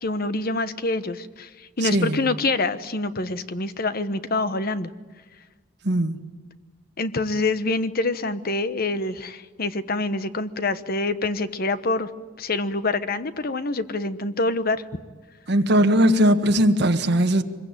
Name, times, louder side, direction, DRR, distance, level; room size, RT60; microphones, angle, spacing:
voice 1, 0.0-4.9 7.0-12.1 12.4-15.0, left 2 dB, 50° left, 1.2 m, -26 dB
voice 2, 1.8-2.2 5.8-6.2 15.5-17.4, right 1 dB, 60° right, 1.7 m, -19 dB
24.5 x 22.5 x 9.1 m
head